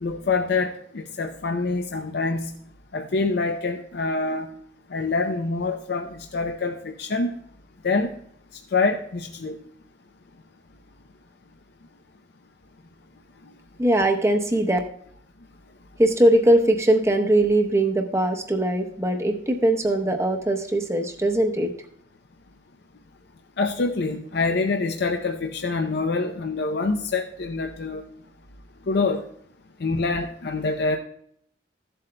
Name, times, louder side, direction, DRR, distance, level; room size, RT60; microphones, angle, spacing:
voice 1, 0.0-2.5 2.9-4.5 4.9-7.3 7.8-8.1 8.7-9.6 23.6-28.0 28.9-29.2 29.8-31.0, left 3 dB, 60° left, 4 dB, 0.5 m, -25 dB
voice 2, 13.8-14.8 16.0-21.7, right 1 dB, 15° right, 4 dB, 0.8 m, -21 dB
14.5 x 7.7 x 2.2 m, 0.66 s
head